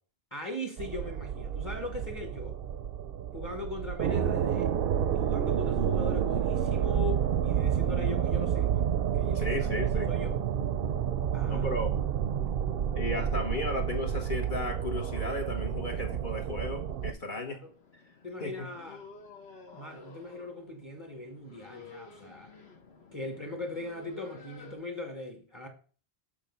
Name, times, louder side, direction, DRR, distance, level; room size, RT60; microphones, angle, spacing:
voice 1, 0.3-2.6 3.3-4.7 5.1-10.4 11.3-11.7 17.3-17.7 18.2-19.0 19.7-22.5 23.1-25.7, left 2 dB, 25° left, 1.4 m, -40 dB
sound 1, 0.8-17.1, right 9 dB, 65° right, 0.7 m, -29 dB
voice 2, 9.3-10.1 11.5-11.9 12.9-17.6 18.4-18.7, left 2 dB, 50° left, 1.4 m, -34 dB
sound 2, 14.9-24.8, left 3 dB, 75° left, 1.5 m, -52 dB
6.9 x 5.7 x 5.4 m
omnidirectional pair, 1.1 m